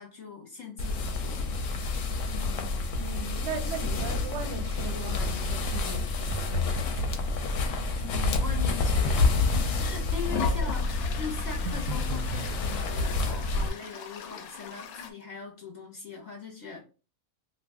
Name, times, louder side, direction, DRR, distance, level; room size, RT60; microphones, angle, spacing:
voice 1, 0.0-1.9 2.3-2.8 8.0-16.8, left 5 dB, 35° left, 0.8 m, -41 dB
sound 1, 0.8-13.7, left 3 dB, 70° left, 0.9 m, -28 dB
voice 2, 2.9-6.8 10.3-10.5, right 5 dB, 55° right, 0.8 m, -38 dB
sound 2, 6.3-7.2 11.6-12.5, left 1 dB, 90° right, 1.2 m, -34 dB
Toilet flush, 10.2-15.1, left 7 dB, 90° left, 1.1 m, -39 dB
2.7 x 2.4 x 3.3 m
omnidirectional pair, 1.5 m